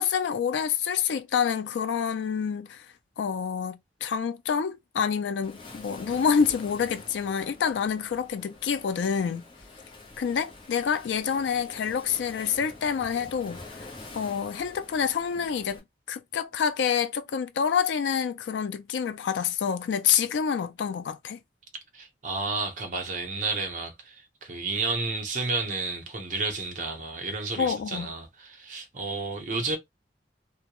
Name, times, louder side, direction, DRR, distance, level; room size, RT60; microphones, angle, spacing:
voice 1, 0.0-2.9 3.2-9.4 10.2-15.8 16.1-21.4 27.6-28.1, left 7 dB, 90° left, 0.3 m, -27 dB
Waves surf, 5.4-15.8, left 2 dB, 30° left, 0.7 m, -46 dB
voice 2, 21.9-29.8, right 3 dB, 45° right, 0.7 m, -31 dB
2.2 x 2.1 x 2.9 m
head